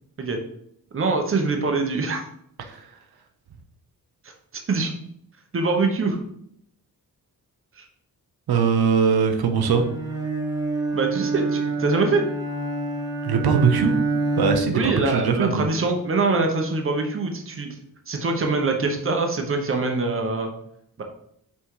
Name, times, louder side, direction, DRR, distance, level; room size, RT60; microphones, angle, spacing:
voice 1, 0.9-2.2 4.7-4.9 5.5-6.2 7.8-7.9 10.9-12.2 14.7-17.7 18.1-20.5 21.0-21.1, right 3 dB, 35° right, 4 dB, 1.0 m, -24 dB
voice 2, 8.5-9.9 13.2-14.0 14.4-15.7, right 6 dB, 90° right, 5 dB, 1.0 m, -21 dB
Bowed string instrument, 9.6-14.9, right 3 dB, 10° right, 1.1 m, -27 dB
5.8 x 4.2 x 4.8 m, 0.70 s
wide cardioid pair, 160°, 36 cm